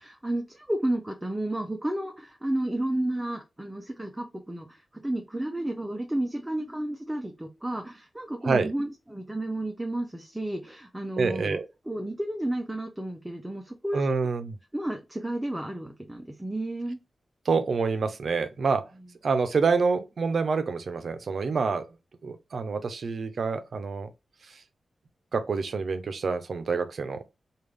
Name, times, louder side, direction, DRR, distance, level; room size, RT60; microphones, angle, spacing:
voice 1, 0.0-11.6 11.9-14.3 14.7-17.0, right 1 dB, 10° right, 0.4 m, -32 dB
voice 2, 11.2-11.7 13.9-14.6 17.5-18.9 19.2-21.9 22.2-24.1 24.5-24.6 25.3-27.2, right 4 dB, 55° right, 0.5 m, -27 dB
3.3 x 2.3 x 3.3 m
wide cardioid pair, 150°, 0 cm